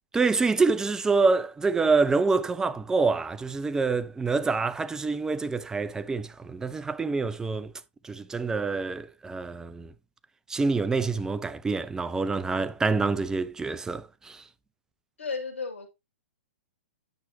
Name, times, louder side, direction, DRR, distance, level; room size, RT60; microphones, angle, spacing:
voice 1, 0.1-7.7 8.0-9.9 10.5-14.4, right 4 dB, 10° right, 0.5 m, -26 dB
voice 2, 15.2-15.9, left 4 dB, 75° left, 1.9 m, -33 dB
9.3 x 5.7 x 2.6 m
figure-of-eight pair, 115°, 7 cm